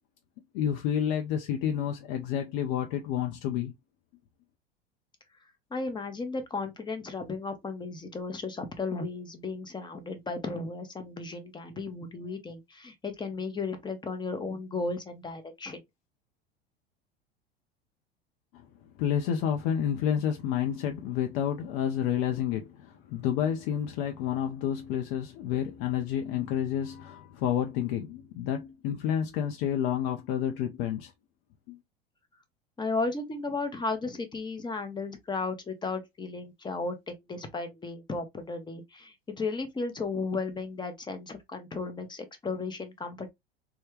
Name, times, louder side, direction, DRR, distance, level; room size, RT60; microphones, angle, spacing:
voice 1, 0.5-3.7 19.0-31.1 31.7-31.8, left 9 dB, 50° left, 0.6 m, -29 dB
voice 2, 5.7-15.8 32.8-43.3, left 3 dB, 15° left, 0.8 m, -34 dB
3.2 x 2.3 x 3.0 m
figure-of-eight pair, 80°, 30 cm